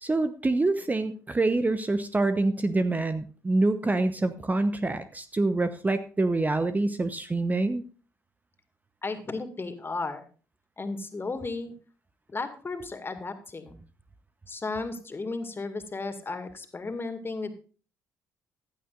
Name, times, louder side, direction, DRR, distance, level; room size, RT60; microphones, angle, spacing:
voice 1, 0.0-7.8, right 2 dB, 20° right, 10 dB, 0.9 m, -26 dB
voice 2, 9.0-10.3 10.8-11.7 12.3-13.8 14.5-17.5, left 3 dB, 25° left, 7 dB, 2.1 m, -34 dB
15.5 x 12.0 x 2.5 m, 0.38 s
figure-of-eight pair, 50°, 8 cm